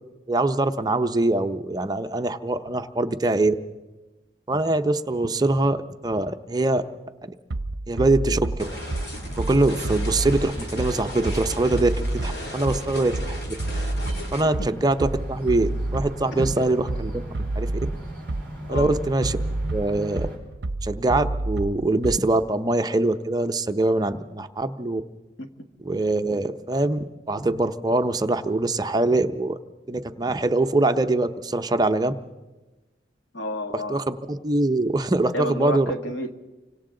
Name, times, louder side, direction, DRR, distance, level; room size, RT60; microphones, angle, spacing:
voice 1, 0.3-3.5 4.5-6.8 7.2-7.3 7.9-8.6 9.4-13.4 14.3-17.2 17.6-17.7 18.7-19.4 19.7-20.3 20.8-25.0 25.8-29.6 29.9-32.1 33.9-35.9, right 2 dB, 20° right, 8 dB, 0.6 m, -23 dB
Bass drum, 7.5-22.5, right 2 dB, 70° right, 0.6 m, -29 dB
sound 1, 8.6-14.4, equal, 60° left, 2.5 m, -35 dB
sound 2, 8.6-20.4, right 1 dB, 10° left, 7.0 m, -41 dB
voice 2, 33.3-34.1 35.3-36.3, equal, 85° left, 5 dB, 1.7 m, -30 dB
29.5 x 25.0 x 3.8 m, 1.2 s
head